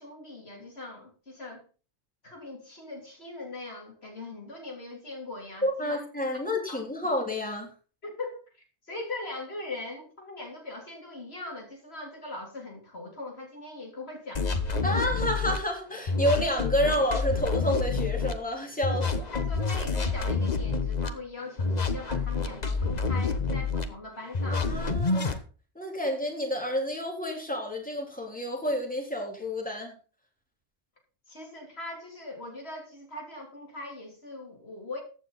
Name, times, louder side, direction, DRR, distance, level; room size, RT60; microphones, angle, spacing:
voice 1, 0.0-1.7 2.2-6.0 6.7-6.8 8.0-8.4 8.9-15.0 19.0-24.7 31.3-35.0, left 2 dB, 70° left, 1 dB, 3.5 m, -41 dB
voice 2, 5.6-7.7 14.8-19.3 24.5-25.4 25.8-30.0, equal, 5° left, 1 dB, 3.4 m, -29 dB
sound 1, 14.4-15.6 16.1-18.3 18.8-21.1 21.6-23.9 24.3-25.4, left 4 dB, 40° left, 1.2 m, -28 dB
14.5 x 9.2 x 4.0 m, 0.36 s
omnidirectional pair, 1.1 m